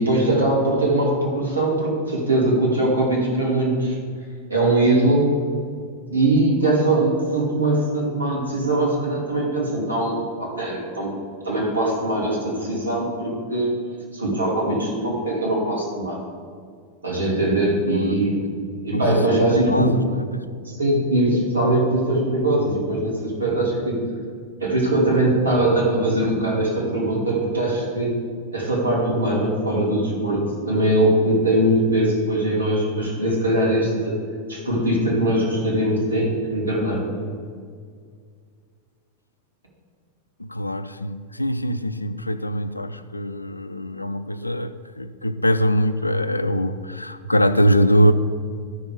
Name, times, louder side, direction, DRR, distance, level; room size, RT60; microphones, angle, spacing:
voice 1, 0.0-4.0 4.5-5.3 6.1-11.2 11.4-13.7 14.1-16.2 17.0-18.5 18.8-19.9 20.6-24.0 24.6-28.2 28.5-34.2 34.5-37.1, right 1 dB, 75° right, -3 dB, 2.5 m, -21 dB
voice 2, 17.9-18.2 18.9-20.5 40.4-48.1, equal, 85° left, 12 dB, 0.4 m, -22 dB
13.0 x 5.5 x 4.9 m, 2.1 s
figure-of-eight pair, 90°, 0 cm